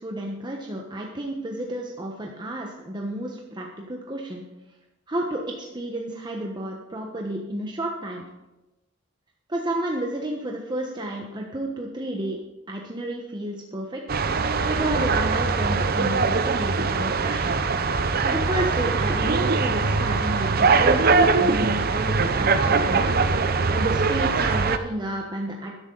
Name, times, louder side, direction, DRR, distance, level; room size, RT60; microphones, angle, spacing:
voice 1, 0.0-4.4 5.1-8.2 9.5-12.4 12.7-14.0 14.7-17.5 18.0-25.7, right 1 dB, 25° right, 0 dB, 1.1 m, -31 dB
sound 1, 14.1-24.8, right 4 dB, 50° right, 0.7 m, -22 dB
13.5 x 11.0 x 3.9 m, 1.0 s
head